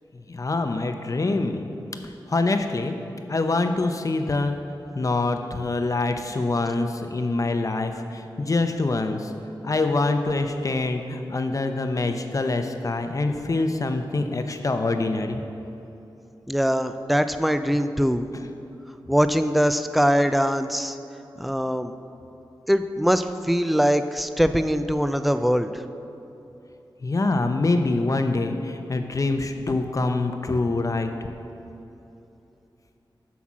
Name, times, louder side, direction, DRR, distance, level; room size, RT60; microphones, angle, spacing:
voice 1, 0.3-1.7 2.0-2.9 3.3-4.6 5.0-9.3 9.6-15.4 27.0-31.1, left 3 dB, 40° left, 6 dB, 0.7 m, -25 dB
voice 2, 16.5-18.3 19.1-21.0 21.4-21.9 22.7-25.7, equal, ahead, 10 dB, 0.4 m, -22 dB
8.3 x 5.9 x 6.1 m, 3.0 s
wide cardioid pair, 75°, 8 cm